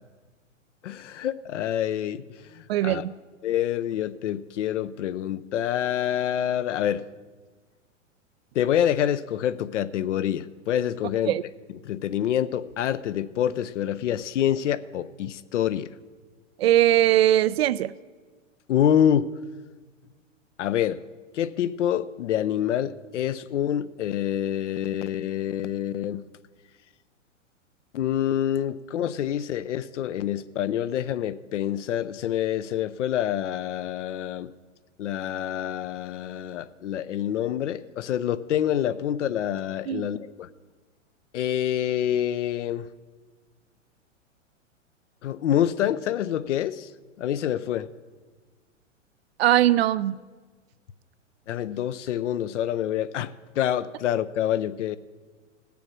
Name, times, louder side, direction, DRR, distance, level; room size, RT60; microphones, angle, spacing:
voice 1, 0.8-2.2 2.5-3.0 3.4-7.0 8.5-11.3 11.8-15.9 18.7-19.3 20.6-21.0 21.3-26.2 27.9-34.5 35.0-40.5 41.3-42.9 45.2-46.9 47.2-47.9 51.5-55.0, left 10 dB, 65° left, 15 dB, 0.6 m, -26 dB
voice 2, 2.7-3.1 11.3-11.4 16.6-17.9 39.9-40.1 49.4-50.2, right 13 dB, 55° right, 17 dB, 0.5 m, -20 dB
17.5 x 7.0 x 6.2 m, 1.4 s
figure-of-eight pair, 110°, 38 cm